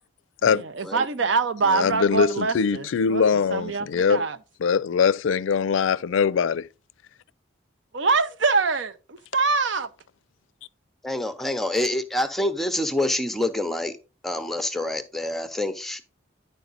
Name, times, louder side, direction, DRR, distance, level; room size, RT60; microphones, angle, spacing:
voice 1, 0.4-4.4 7.9-9.9, right 4 dB, 75° right, 0.7 m, -25 dB
voice 2, 1.7-4.3 4.6-6.7, left 6 dB, 85° left, 0.4 m, -22 dB
voice 3, 11.0-14.0 14.2-16.0, left 1 dB, ahead, 0.6 m, -26 dB
10.5 x 4.7 x 3.9 m
head